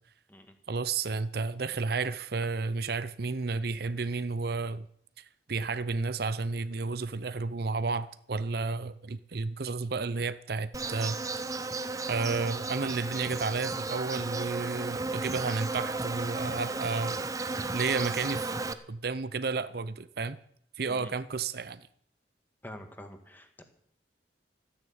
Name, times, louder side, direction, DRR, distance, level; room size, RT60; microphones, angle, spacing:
voice 1, 0.7-4.9 5.5-11.2 12.1-17.2 17.7-20.4 20.8-21.8, right 4 dB, 60° right, 0.6 m, -32 dB
Insect, 10.7-18.7, right 3 dB, 20° right, 0.7 m, -34 dB
voice 2, 22.6-23.6, left 1 dB, 10° left, 1.7 m, -46 dB
13.5 x 10.0 x 8.7 m
head